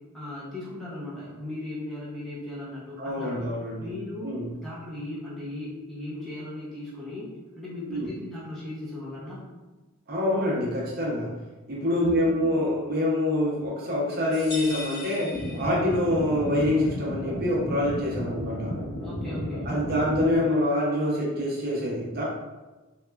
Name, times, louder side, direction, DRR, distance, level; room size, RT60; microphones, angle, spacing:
voice 1, 0.1-3.4 3.8-4.3 4.6-7.3 7.6-9.4 11.9-12.4 19.0-19.7, left 1 dB, ahead, -9 dB, 0.5 m, -37 dB
voice 2, 3.0-3.9 4.2-4.5 7.9-8.1 10.1-11.3 11.7-18.7 19.6-22.2, left 1 dB, 45° right, -4 dB, 0.6 m, -26 dB
sound 1, 14.3-16.3, left 2 dB, 45° left, 1.0 m, -39 dB
sound 2, 15.3-20.4, equal, 75° left, 1.3 m, -33 dB
2.9 x 2.2 x 2.2 m, 1.2 s
head